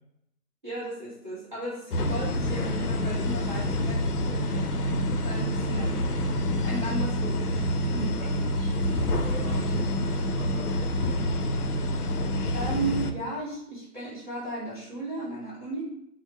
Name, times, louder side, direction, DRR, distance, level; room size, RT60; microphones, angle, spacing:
voice 1, 0.6-4.1 5.2-6.0 6.3-8.2 12.5-15.8, right 2 dB, 30° right, -7 dB, 1.0 m, -35 dB
sound 1, 1.9-13.1, left 1 dB, 70° left, 0.6 m, -27 dB
voice 2, 4.4-4.8 8.1-11.3, equal, 25° left, -8 dB, 1.1 m, -41 dB
3.4 x 2.0 x 3.0 m, 0.78 s
hypercardioid pair, 180°, 47 cm